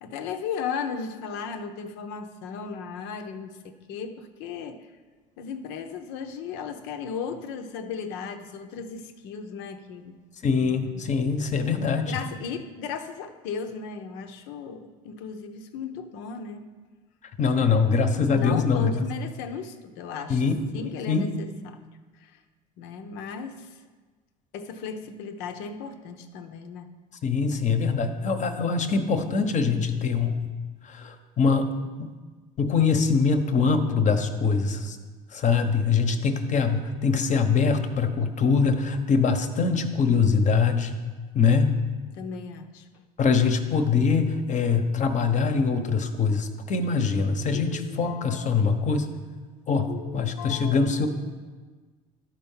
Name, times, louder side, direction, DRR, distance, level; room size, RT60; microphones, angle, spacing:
voice 1, 0.0-4.9 5.4-10.2 12.1-16.7 18.3-21.8 22.2-22.4 22.8-23.7 24.5-26.9 42.1-42.9 47.5-48.9 49.9-50.8, left 6 dB, 75° left, 8 dB, 0.9 m, -36 dB
voice 2, 10.4-12.2 17.4-19.0 20.3-20.5 21.1-21.3 27.2-30.4 30.8-31.7 32.0-32.1 32.6-35.0 35.3-41.0 41.3-41.8 43.2-49.1 49.7-51.1, left 5 dB, 40° left, 7 dB, 1.0 m, -23 dB
12.0 x 4.5 x 5.6 m, 1.4 s
supercardioid pair, 85°, 19 cm